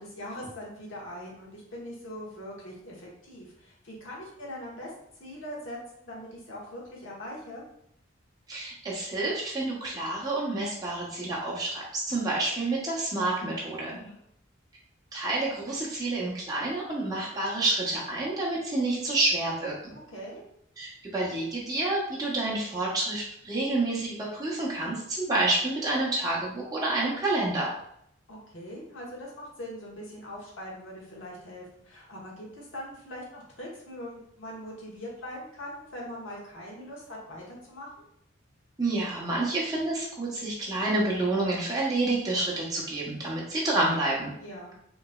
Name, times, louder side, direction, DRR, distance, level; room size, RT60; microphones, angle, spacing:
voice 1, 0.0-4.9 5.2-7.6 13.9-14.2 20.1-20.4 28.3-37.9 44.4-44.7, equal, 70° left, -4 dB, 1.1 m, -41 dB
voice 2, 8.5-14.0 15.1-19.9 20.8-27.7 38.8-44.3, right 2 dB, 20° right, -5 dB, 0.8 m, -29 dB
3.8 x 3.0 x 2.3 m, 0.72 s
head